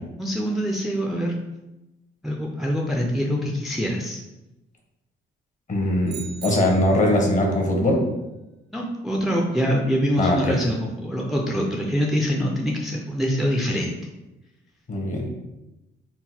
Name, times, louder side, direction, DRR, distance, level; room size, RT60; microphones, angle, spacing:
voice 1, 0.2-1.3 2.2-4.2 8.7-14.0, equal, ahead, -1 dB, 0.5 m, -24 dB
voice 2, 5.7-8.0 10.2-10.6 14.9-15.3, left 1 dB, 40° left, 0 dB, 1.0 m, -21 dB
sound 1, 6.1-7.2, right 7 dB, 55° right, 0.5 m, -39 dB
3.8 x 2.1 x 4.3 m, 0.99 s
cardioid pair, 90°, 20 cm